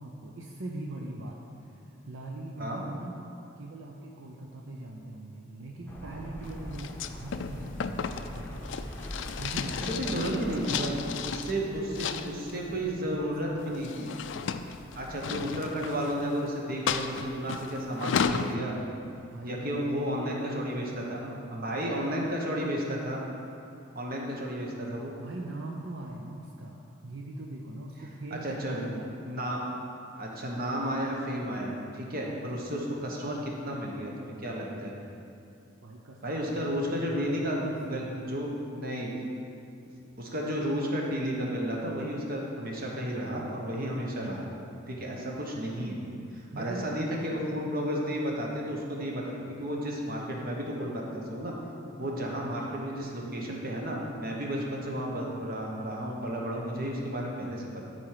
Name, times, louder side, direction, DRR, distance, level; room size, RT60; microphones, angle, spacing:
voice 1, 0.0-3.2 3.6-8.7 9.4-11.0 11.4-13.9 19.2-22.1 25.2-29.1 33.0-33.2 35.8-38.2 46.5-46.9 52.0-52.2, right 2 dB, 75° right, -1 dB, 0.7 m, -41 dB
sound 1, 5.9-15.5, left 1 dB, 10° left, 0.9 m, -44 dB
sound 2, 6.7-11.5 11.9-12.6 13.6-16.3 16.9-18.5, left 6 dB, 65° left, 0.4 m, -33 dB
voice 2, 10.0-14.1 14.9-18.7 19.4-21.2 21.5-23.2 23.9-25.1 28.3-28.8 29.3-29.6 30.2-35.0 36.2-37.6 37.9-39.1 40.2-44.4 44.9-46.0 46.3-51.5 52.0-57.8, equal, 50° right, -2 dB, 1.3 m, -32 dB
12.5 x 4.5 x 4.9 m, 2.5 s
head